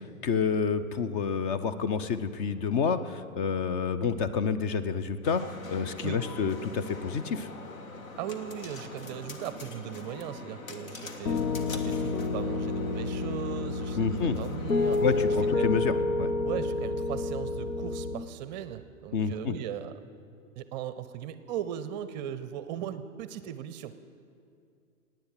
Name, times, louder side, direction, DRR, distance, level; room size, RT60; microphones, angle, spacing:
voice 1, 0.2-5.4 5.7-7.5 14.0-14.4 15.0-16.3 19.1-19.5, left 6 dB, 35° left, 12 dB, 0.7 m, -28 dB
sound 1, 5.2-15.5, left 2 dB, 70° left, 1.7 m, -43 dB
voice 2, 8.2-15.0 15.5-15.7 16.4-19.9 20.6-23.9, right 10 dB, 30° right, 13 dB, 0.5 m, -38 dB
Piano, 11.3-18.1, left 3 dB, 90° left, 1.0 m, -29 dB
18.0 x 9.1 x 7.5 m, 2.5 s
hypercardioid pair, 115°, 43 cm